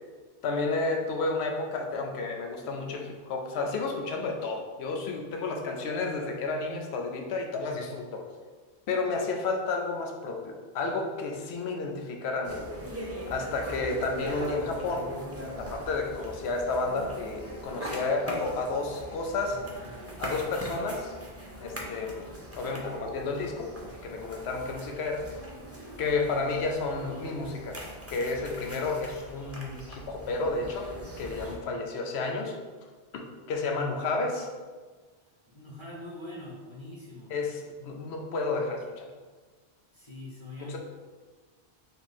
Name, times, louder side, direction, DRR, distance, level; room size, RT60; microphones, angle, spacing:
voice 1, 0.4-8.2 8.9-12.6 13.3-15.1 15.6-19.6 20.2-21.1 21.6-23.7 24.0-25.3 26.0-27.8 28.1-30.9 31.2-32.6 33.1-33.2 33.5-34.5 37.3-39.1 40.6-40.8, left 3 dB, 85° left, 2 dB, 0.9 m, -31 dB
sound 1, 12.4-31.6, right 1 dB, 20° right, 0.5 m, -41 dB
voice 2, 35.5-37.3 39.9-40.8, left 1 dB, 30° left, -6 dB, 1.0 m, -43 dB
3.5 x 2.9 x 4.1 m, 1.4 s
omnidirectional pair, 1.1 m